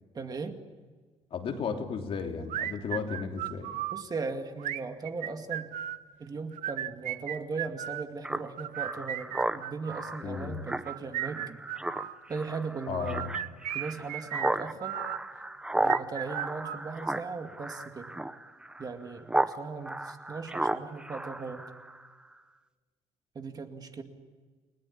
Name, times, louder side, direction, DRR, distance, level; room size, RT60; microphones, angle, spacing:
voice 1, 0.1-0.5 3.9-5.7 6.2-11.6 12.3-13.3 13.7-15.0 15.8-18.2 18.8-19.3 19.6-21.7 23.3-24.0, right 4 dB, 30° right, 6 dB, 2.2 m, -38 dB
voice 2, 1.3-3.7 10.2-10.6 12.9-13.4, left 6 dB, 50° left, 3 dB, 3.2 m, -34 dB
sound 1, 2.5-4.0 4.6-6.0 6.5-8.1 8.6-10.2 10.7-12.2 12.9-15.2 15.8-17.3, right 12 dB, 80° right, 1.1 m, -36 dB
Speech synthesizer, 8.2-19.6 19.8-22.1, right 1 dB, 5° right, 0.8 m, -34 dB
29.5 x 19.0 x 10.0 m, 1.5 s
cardioid pair, 150°, 13 cm